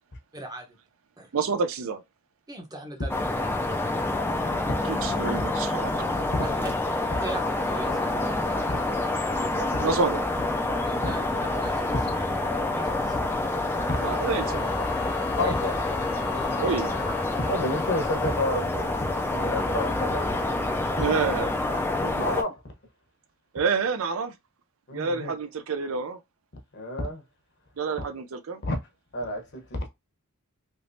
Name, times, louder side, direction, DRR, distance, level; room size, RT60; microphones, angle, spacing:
voice 1, 0.3-0.8 1.2-1.3 2.5-3.2 6.4-6.5 7.2-8.7 10.8-12.2 12.7-13.2 15.3-15.5 16.3-16.6, right 1 dB, 20° right, 0.8 m, -40 dB
voice 2, 1.3-2.0 4.9-6.1 9.8-10.2 14.0-14.7 16.6-16.9 21.0-21.5 23.5-24.3 24.9-26.2 27.8-28.6, right 5 dB, 70° right, 0.5 m, -28 dB
sound 1, 3.1-22.4, left 2 dB, 10° left, 0.4 m, -27 dB
voice 3, 5.2-5.5 6.3-6.4 8.7-8.8 9.7-9.8 13.2-13.3 13.9-14.1 15.4-15.7 16.6-16.7 17.4-18.9 19.3-20.3 22.0-22.6 24.9-25.3 26.7-27.2 28.6-28.8 29.1-29.9, left 2 dB, 55° left, 0.9 m, -30 dB
sound 2, 13.8-18.6, left 14 dB, 90° left, 0.6 m, -39 dB
3.4 x 3.0 x 2.6 m
head